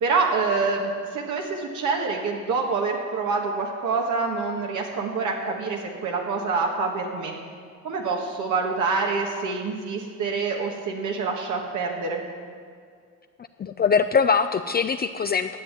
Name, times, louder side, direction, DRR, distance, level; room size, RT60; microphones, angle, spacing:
voice 1, 0.0-7.3 7.8-12.2, right 4 dB, 80° right, 0 dB, 1.5 m, -26 dB
voice 2, 13.6-15.6, left 6 dB, 30° left, 9 dB, 0.4 m, -22 dB
12.0 x 7.4 x 8.1 m, 2.1 s
cardioid pair, 90°, 30 cm